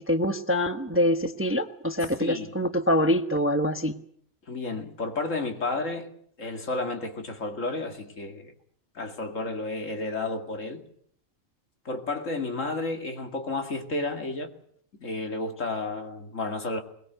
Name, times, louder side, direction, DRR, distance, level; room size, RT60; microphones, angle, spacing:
voice 1, 0.0-3.9, equal, 10° right, 1.0 m, -25 dB
voice 2, 2.2-2.6 4.5-6.1 6.4-8.5 8.9-10.8 11.8-14.5 15.0-16.8, left 3 dB, 65° left, 2.6 m, -32 dB
22.0 x 21.5 x 8.0 m
omnidirectional pair, 1.5 m